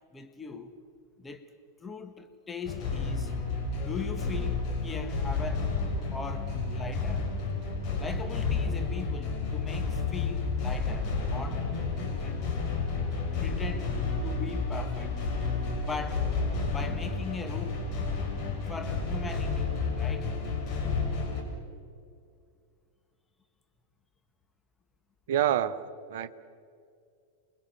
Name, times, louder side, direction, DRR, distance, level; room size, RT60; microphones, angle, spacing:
voice 1, 0.1-0.7 1.2-1.5 1.8-3.3 3.8-5.7 6.1-7.3 8.0-11.7 12.2-12.4 13.4-13.9 14.2-15.2 15.8-16.3 16.7-17.9 18.7-20.3, left 4 dB, 15° left, 1.7 m, -40 dB
sound 1, 2.6-21.4, left 4 dB, 40° left, 6.7 m, -31 dB
voice 2, 25.3-25.8 26.1-26.3, right 11 dB, 55° right, 1.1 m, -26 dB
28.5 x 23.5 x 7.3 m
figure-of-eight pair, 90°, 0 cm